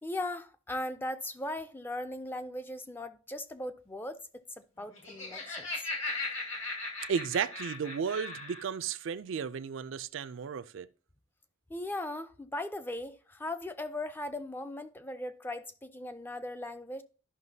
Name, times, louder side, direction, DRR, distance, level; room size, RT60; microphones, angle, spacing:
voice 1, 0.0-5.8 11.7-17.0, left 1 dB, 10° left, 0.4 m, -38 dB
Laughter, 4.8-8.7, left 3 dB, 70° left, 2.0 m, -38 dB
voice 2, 7.1-10.9, right 6 dB, 65° right, 0.4 m, -34 dB
12.5 x 5.6 x 2.7 m
head